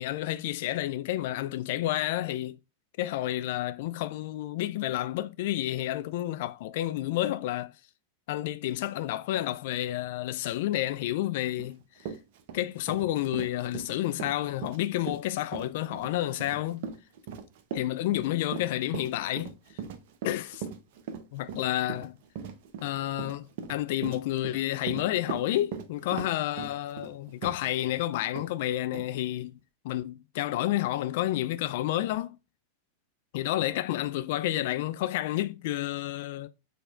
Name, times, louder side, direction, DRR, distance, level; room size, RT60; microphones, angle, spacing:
voice 1, 0.0-2.6 3.0-7.7 8.3-11.8 12.5-16.9 17.7-19.5 20.2-20.7 21.3-22.2 22.8-29.6 29.8-32.4 33.3-36.5, left 14 dB, 50° left, 0.4 m, -30 dB
Run, 11.6-11.7 12.0-28.0 28.3-28.5 28.9-29.1, right 6 dB, 50° right, 0.6 m, -39 dB
6.0 x 3.4 x 2.5 m
figure-of-eight pair, 90°, 0 cm